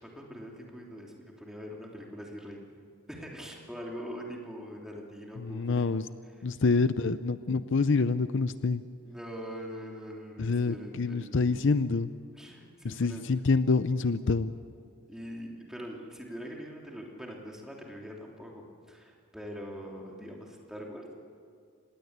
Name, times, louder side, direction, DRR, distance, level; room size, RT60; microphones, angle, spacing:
voice 1, 0.0-2.8 3.1-5.9 6.4-6.7 9.0-11.6 12.3-13.2 15.1-21.1, equal, 5° right, -1 dB, 3.0 m, -43 dB
voice 2, 5.4-6.0 6.4-8.8 10.4-12.1 12.8-14.5, left 4 dB, 55° left, 13 dB, 0.6 m, -27 dB
26.5 x 19.5 x 8.2 m, 2.2 s
head